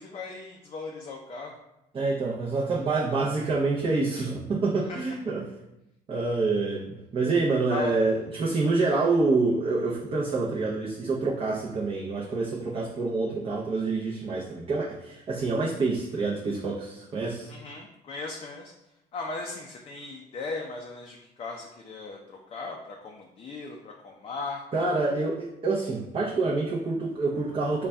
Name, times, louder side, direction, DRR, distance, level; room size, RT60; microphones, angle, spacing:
voice 1, 0.0-1.6 4.9-5.2 7.7-8.0 17.5-18.7 19.1-24.6, left 3 dB, 35° left, 1 dB, 0.4 m, -38 dB
voice 2, 1.9-5.5 6.1-17.5 24.7-27.9, right 3 dB, 30° right, -5 dB, 0.6 m, -27 dB
3.9 x 2.2 x 3.4 m, 0.88 s
cardioid pair, 110°, 17 cm